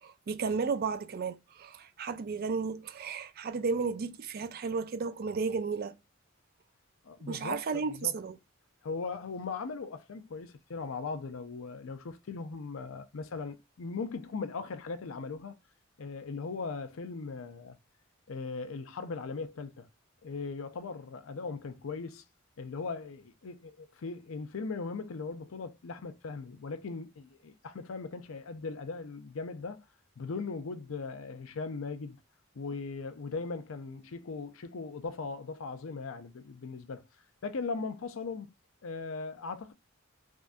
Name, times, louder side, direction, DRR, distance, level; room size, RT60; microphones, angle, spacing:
voice 1, 0.0-5.9 7.3-8.3, right 5 dB, 45° right, 0.4 m, -33 dB
voice 2, 7.0-8.1 8.8-15.5 16.0-17.8 18.3-19.9 20.2-22.2 22.6-29.8 30.2-32.2 32.5-37.1 37.4-38.5 38.8-39.7, left 4 dB, 75° left, 0.5 m, -39 dB
3.6 x 2.6 x 2.2 m
head